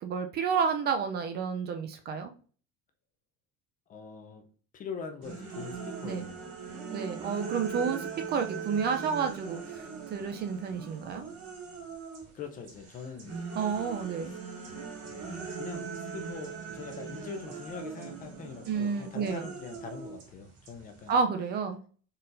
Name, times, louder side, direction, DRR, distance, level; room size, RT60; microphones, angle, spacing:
voice 1, 0.0-2.3 6.0-6.3 6.9-11.2 13.6-14.3 18.7-19.5 21.1-21.8, right 6 dB, 35° right, 6 dB, 0.4 m, -30 dB
voice 2, 3.9-4.4 4.7-6.7 12.3-14.4 15.0-21.1, left 5 dB, 25° left, 6 dB, 0.5 m, -43 dB
sound 1, 5.2-12.3 12.6-21.2, right 6 dB, 55° right, 2.0 m, -40 dB
4.3 x 3.9 x 2.5 m, 0.40 s
cardioid pair, 165°, 30 cm